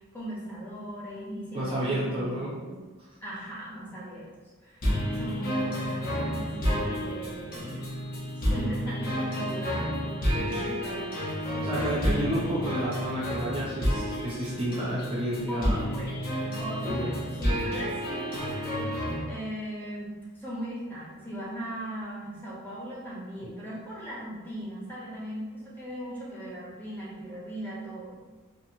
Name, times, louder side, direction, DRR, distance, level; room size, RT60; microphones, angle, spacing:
voice 1, 0.0-2.2 2.6-2.8 3.2-4.3 4.6-7.8 8.5-11.0 11.4-12.1 15.5-16.2 16.6-18.5 19.2-20.1 20.4-28.2, right 1 dB, 10° left, -8 dB, 0.8 m, -39 dB
voice 2, 1.5-2.6 11.6-15.8 16.8-17.1 23.4-23.5, right 1 dB, 25° right, -7 dB, 0.4 m, -30 dB
sound 1, 4.8-19.2, equal, 45° left, 0.9 m, -30 dB
2.8 x 2.5 x 2.7 m, 1.3 s
head